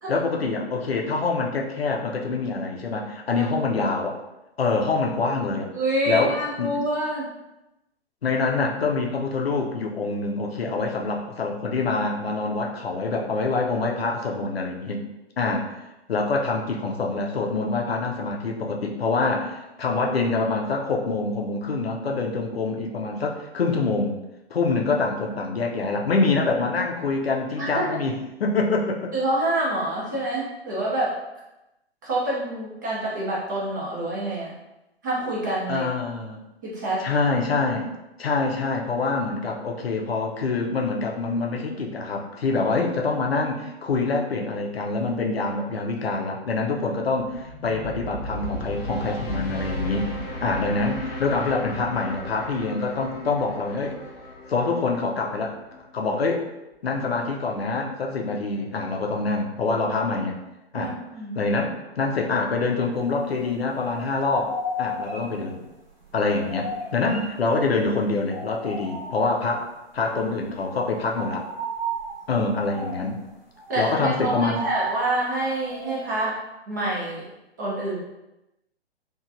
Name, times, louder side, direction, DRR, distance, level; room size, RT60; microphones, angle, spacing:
voice 1, 0.1-4.2 4.6-5.7 6.1-6.8 8.2-15.1 15.4-15.7 16.1-24.2 24.5-28.1 28.4-29.1 35.7-36.4 37.0-37.9 38.2-50.1 50.4-54.0 54.5-55.6 55.9-56.5 56.8-60.4 60.7-61.0 61.3-65.6 66.1-71.4 72.3-73.2 73.8-74.6, left 3 dB, 70° left, 1 dB, 0.6 m, -25 dB
voice 2, 5.7-7.3 15.4-15.5 27.6-27.9 29.1-31.1 32.0-34.5 35.0-35.8 36.6-37.0 60.7-61.4 72.9-73.1 73.7-76.3 76.7-77.3 77.6-78.0, right 1 dB, 20° right, -6 dB, 0.4 m, -27 dB
sound 1, 47.2-56.2, equal, 20° left, 0.6 m, -35 dB
sound 2, 62.9-63.7 63.9-67.9 68.3-69.6 69.9-70.2 70.4-76.2, right 1 dB, 45° right, 0.8 m, -35 dB
3.0 x 2.3 x 2.5 m, 0.94 s
figure-of-eight pair, 120°, 32 cm